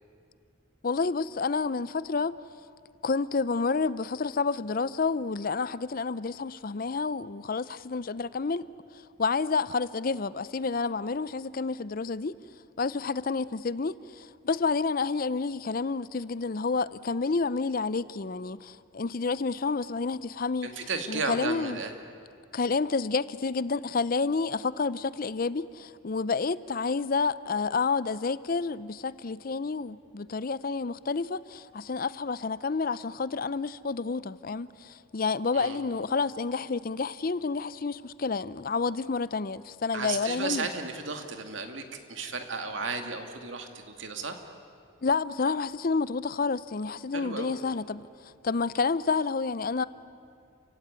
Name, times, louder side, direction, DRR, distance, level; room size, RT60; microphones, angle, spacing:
voice 1, 0.8-2.4 3.0-12.3 12.8-20.8 21.1-21.8 22.5-40.7 45.0-49.8, left 4 dB, 45° left, 0.5 m, -29 dB
voice 2, 20.6-21.9 35.5-35.8 39.9-41.8 42.1-44.4 47.1-47.6, right 4 dB, 70° right, 2.3 m, -34 dB
29.5 x 16.0 x 9.5 m
head